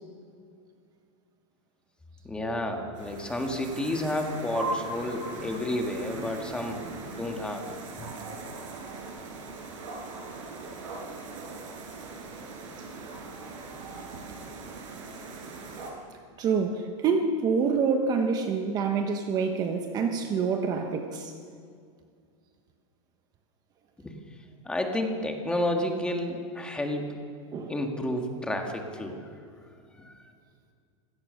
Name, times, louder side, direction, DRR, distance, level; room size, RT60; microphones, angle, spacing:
voice 1, 2.2-6.9 7.2-7.7 8.0-8.1 24.0-24.2 24.6-27.2 27.7-29.3 30.0-30.3, left 1 dB, 5° left, 3 dB, 1.7 m, -31 dB
sound 1, 3.0-15.9, right 3 dB, 85° right, 6.5 m, -40 dB
voice 2, 16.4-21.3 27.5-27.7, right 5 dB, 25° right, 5 dB, 1.2 m, -27 dB
26.5 x 16.5 x 6.5 m, 2.2 s
supercardioid pair, 170°, 16 cm